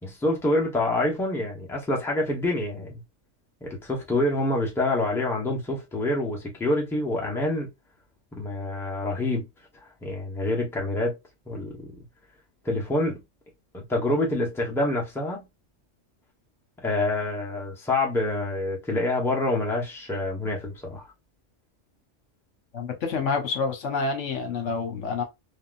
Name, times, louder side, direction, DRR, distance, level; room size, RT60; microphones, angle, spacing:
voice 1, 0.0-3.0 3.6-7.7 8.3-9.4 10.0-11.1 11.5-11.9 12.6-13.2 13.7-15.5 16.8-21.1, left 2 dB, ahead, 0.8 m, -26 dB
voice 2, 22.7-25.2, left 4 dB, 70° left, 1.2 m, -28 dB
3.6 x 2.3 x 2.4 m
omnidirectional pair, 1.3 m